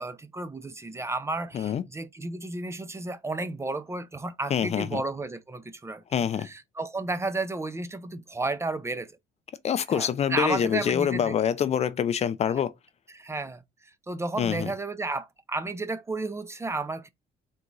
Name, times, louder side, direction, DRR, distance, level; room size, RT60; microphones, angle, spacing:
voice 1, 0.0-9.1 9.9-11.3 12.5-12.6 13.1-13.6 14.1-17.1, right 2 dB, 15° right, 0.5 m, -32 dB
voice 2, 4.5-5.0 6.1-6.5 9.6-12.7 14.4-14.7, left 8 dB, 40° left, 0.4 m, -26 dB
3.9 x 3.6 x 2.9 m
cardioid pair, 110°, 17 cm